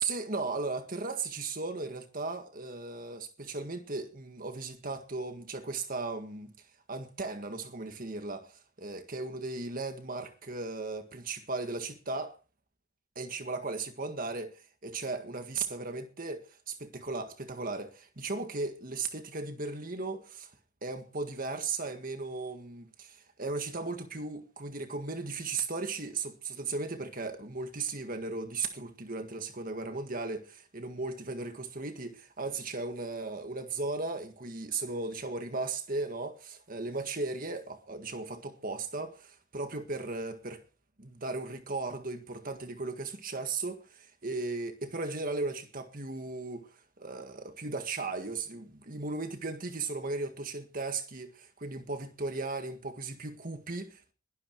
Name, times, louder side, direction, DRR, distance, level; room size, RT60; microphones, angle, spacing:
voice 1, 0.0-12.4 13.2-20.5 20.8-40.6 41.0-54.1, right 3 dB, 40° right, 1.8 m, -36 dB
21.5 x 12.5 x 4.7 m
head